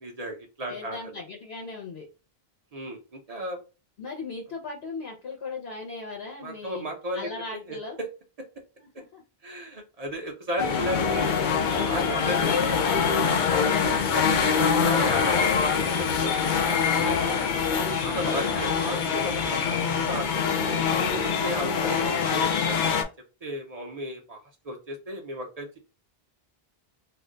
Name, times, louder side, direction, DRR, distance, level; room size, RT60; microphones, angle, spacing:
voice 1, 0.0-1.1 2.7-3.6 6.4-7.8 9.4-11.4 11.8-12.8 13.9-17.2 17.9-20.5 21.2-23.0 23.4-25.8, equal, 45° right, 1 dB, 0.6 m, -35 dB
voice 2, 0.7-2.1 4.0-6.8 7.1-8.0 8.8-9.2 12.4-13.7 18.1-19.0, left 4 dB, 90° left, -1 dB, 1.0 m, -36 dB
sound 1, 10.6-23.0, left 6 dB, 60° left, 0.6 m, -24 dB
2.5 x 2.2 x 3.7 m, 0.31 s
omnidirectional pair, 1.0 m